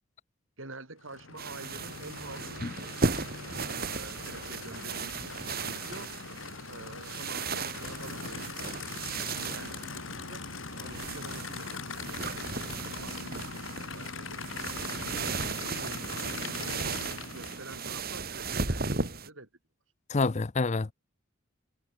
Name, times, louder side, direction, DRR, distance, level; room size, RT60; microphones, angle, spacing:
voice 1, 0.6-2.6 3.4-6.1 6.7-8.9 9.1-14.8 15.2-16.8 17.3-19.0 19.3-19.5, right 2 dB, 70° right, 5.2 m, -48 dB
Aircraft / Idling, 1.0-17.9, left 4 dB, 70° left, 2.6 m, -41 dB
sound 1, 1.4-19.3, right 4 dB, 45° right, 2.5 m, -36 dB
voice 2, 20.1-20.9, left 3 dB, 35° left, 0.5 m, -27 dB
head